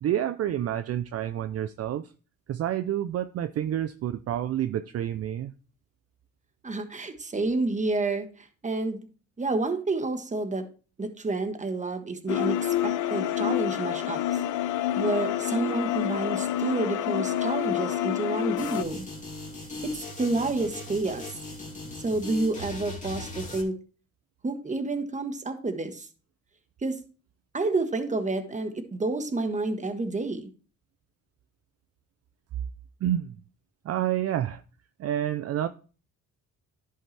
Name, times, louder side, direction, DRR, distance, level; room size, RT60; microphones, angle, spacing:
voice 1, 0.0-2.1 2.5-5.5 33.0-33.4 33.8-34.6 35.0-35.7, right 11 dB, 55° right, 11 dB, 0.5 m, -29 dB
voice 2, 6.6-9.1 9.4-10.6 11.0-14.4 15.0-19.1 19.8-21.4 22.0-23.8 24.4-26.1 26.8-27.0 27.5-30.5, right 3 dB, 25° right, 7 dB, 1.3 m, -29 dB
sound 1, 12.3-18.8, left 12 dB, 85° left, 0.6 m, -28 dB
sound 2, 18.6-23.6, left 2 dB, 25° left, 2.4 m, -39 dB
11.0 x 5.5 x 3.3 m, 0.37 s
cardioid pair, 90°, 30 cm